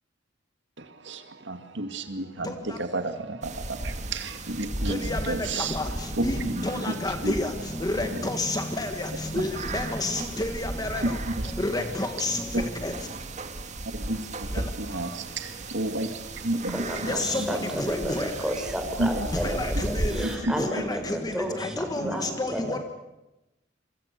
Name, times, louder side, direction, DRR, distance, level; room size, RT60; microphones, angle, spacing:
voice 1, 0.8-5.8 6.2-6.9 7.2-7.3 8.1-8.2 11.0-11.1 12.5-12.6 13.8-14.5 14.8-17.2 17.5-17.7 19.0-19.3 20.1-20.5 22.0-22.1, right 2 dB, 65° right, 7 dB, 2.2 m, -31 dB
voice 2, 2.4-2.8 4.8-11.2 11.4-13.1 14.5-14.7 16.9-18.3 19.3-22.8, left 2 dB, 20° left, 6 dB, 1.6 m, -31 dB
sound 1, 3.4-20.4, right 2 dB, 40° right, 2.2 m, -35 dB
voice 3, 16.7-22.8, equal, 5° right, 3 dB, 5.3 m, -32 dB
27.5 x 24.5 x 6.8 m, 0.95 s
head